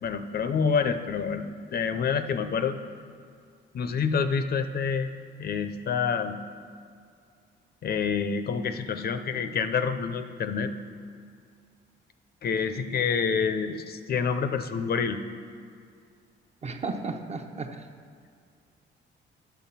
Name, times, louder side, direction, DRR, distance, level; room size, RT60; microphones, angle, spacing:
voice 1, 0.0-1.4 1.7-2.8 3.7-5.1 5.4-6.4 7.8-10.7 12.4-15.2, left 6 dB, 50° left, 10 dB, 0.6 m, -27 dB
voice 2, 16.6-17.9, right 3 dB, 35° right, 5 dB, 0.8 m, -34 dB
9.2 x 5.9 x 5.7 m, 2.2 s
cardioid pair, 90°, 20 cm